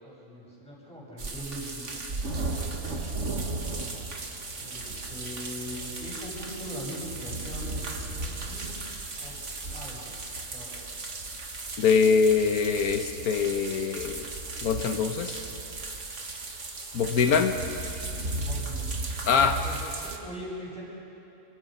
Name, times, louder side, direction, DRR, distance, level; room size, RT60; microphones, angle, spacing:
voice 1, 0.0-2.0 4.6-7.7 8.2-8.7 9.2-10.2 10.5-10.8 18.3-18.9 19.6-20.8, equal, 5° left, -6 dB, 7.8 m, -41 dB
sound 1, 1.2-20.2, right 3 dB, 55° right, 2.1 m, -35 dB
voice 2, 11.8-14.3 14.6-15.4 16.9-17.6 19.3-19.6, left 6 dB, 85° left, 7 dB, 1.5 m, -23 dB
29.5 x 26.0 x 5.4 m, 2.9 s
omnidirectional pair, 1.5 m